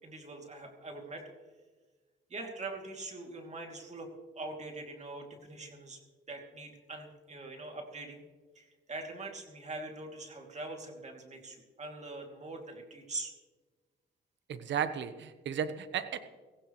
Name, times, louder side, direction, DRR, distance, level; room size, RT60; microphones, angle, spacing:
voice 1, 0.0-1.2 2.3-4.1 4.4-6.0 6.3-8.2 8.5-13.3, right 2 dB, 35° right, 2 dB, 2.7 m, -43 dB
voice 2, 14.5-16.2, right 8 dB, 65° right, 11 dB, 1.1 m, -34 dB
16.5 x 15.5 x 3.2 m, 1.4 s
cardioid pair, 90°, 20 cm